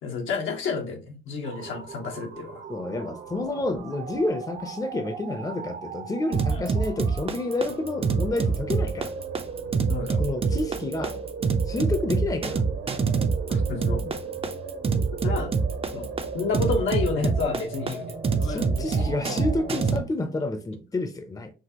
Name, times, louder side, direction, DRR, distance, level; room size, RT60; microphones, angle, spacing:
voice 1, 0.0-2.6 6.5-6.6 9.9-10.2 13.5-14.0 15.2-15.5 15.9-16.1 16.3-18.0 18.4-19.5 19.8-19.9, left 4 dB, 75° left, 1.3 m, -30 dB
sound 1, 1.4-20.0, right 4 dB, 60° right, 0.9 m, -37 dB
voice 2, 2.7-9.1 10.2-11.2 11.7-12.6 14.0-14.1 18.3-21.5, left 2 dB, 20° left, 0.7 m, -29 dB
sound 2, 6.3-20.0, right 5 dB, 30° right, 0.6 m, -25 dB
6.1 x 2.4 x 2.9 m
cardioid pair, 90°, 20 cm